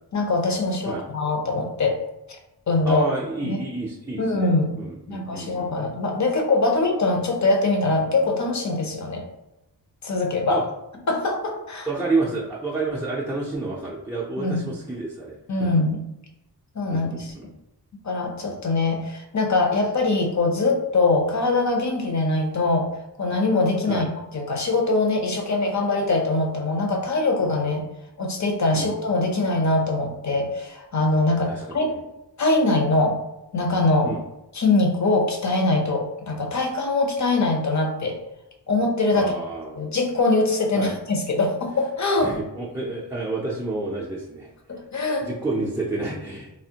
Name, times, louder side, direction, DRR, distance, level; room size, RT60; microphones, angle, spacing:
voice 1, 0.1-2.0 2.7-3.0 3.4-3.6 4.2-4.7 5.1-9.3 10.0-10.6 11.1-11.9 14.4-14.6 15.5-16.1 16.7-17.3 18.0-22.9 23.2-24.1 24.3-27.8 28.2-31.9 32.4-33.2 33.5-34.1 34.5-38.2 38.7-39.3 39.8-42.3 44.7-45.3, left 2 dB, 40° left, 2 dB, 0.7 m, -22 dB
voice 2, 2.8-6.0 10.5-10.6 11.9-15.7 16.9-17.5 23.9-24.1 28.7-28.9 31.5-31.9 34.0-34.2 39.1-39.9 40.8-41.0 42.2-44.5 45.2-46.5, right 3 dB, 10° right, -6 dB, 0.4 m, -30 dB
3.3 x 2.1 x 2.7 m, 0.91 s
cardioid pair, 65°, 43 cm